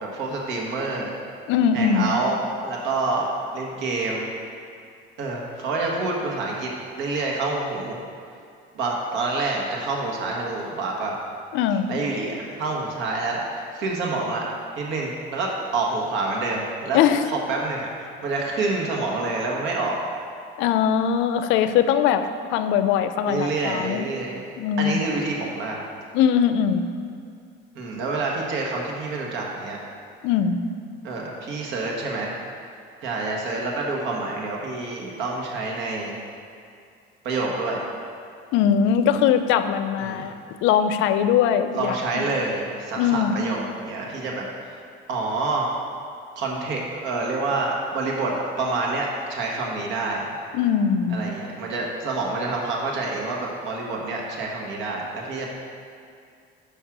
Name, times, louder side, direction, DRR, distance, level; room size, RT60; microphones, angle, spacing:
voice 1, 0.0-1.1 1.7-2.4 2.6-4.3 5.2-6.7 7.0-8.0 8.7-11.2 11.9-14.5 14.8-17.0 17.2-20.0 23.3-24.5 24.8-25.8 27.7-29.8 31.0-32.4 33.0-36.2 37.2-37.8 40.0-40.3 41.7-44.8 45.1-45.7 46.3-50.3 51.1-55.5, right 3 dB, 70° right, -2 dB, 1.5 m, -27 dB
voice 2, 1.5-2.1 11.5-11.9 16.9-17.2 20.6-24.1 24.6-25.0 26.1-26.9 30.2-30.6 38.5-40.3 40.6-42.3 43.0-43.4 50.5-51.2, left 8 dB, 85° left, 10 dB, 0.5 m, -21 dB
6.3 x 5.4 x 5.9 m, 2.4 s
cardioid pair, 125°, 20 cm